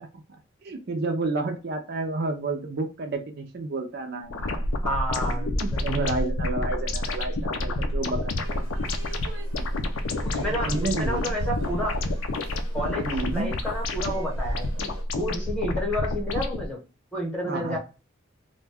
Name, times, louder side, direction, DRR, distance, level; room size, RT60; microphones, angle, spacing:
voice 1, 0.6-4.7 5.3-8.7 9.6-9.9 10.3-11.4 13.0-13.5 17.5-17.8, right 3 dB, 50° right, 5 dB, 0.5 m, -31 dB
sound 1, 4.3-16.7, left 1 dB, 80° left, 0.5 m, -29 dB
voice 2, 4.8-6.2 10.2-12.0 12.7-13.1 13.3-16.8 17.1-17.8, equal, 5° left, -1 dB, 0.9 m, -31 dB
sound 2, 8.4-15.0, right 2 dB, 90° right, 1.0 m, -46 dB
2.5 x 2.2 x 3.3 m, 0.31 s
head